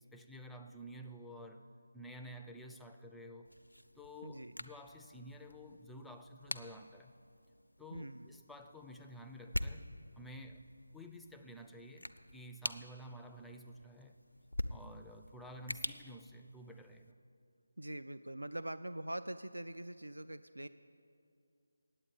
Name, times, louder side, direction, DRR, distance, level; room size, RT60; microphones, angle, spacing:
voice 1, 0.1-1.7 1.9-3.5 4.0-7.1 7.8-10.7 10.9-14.2 14.7-17.1, equal, ahead, 3 dB, 0.4 m, -51 dB
sound 1, 3.4-17.1, left 1 dB, 90° left, 0.6 m, -46 dB
voice 2, 4.2-4.5 7.9-8.3 17.8-20.7, right 1 dB, 80° right, 12 dB, 0.3 m, -43 dB
8.7 x 8.6 x 8.7 m, 2.5 s
figure-of-eight pair, 160°, 0 cm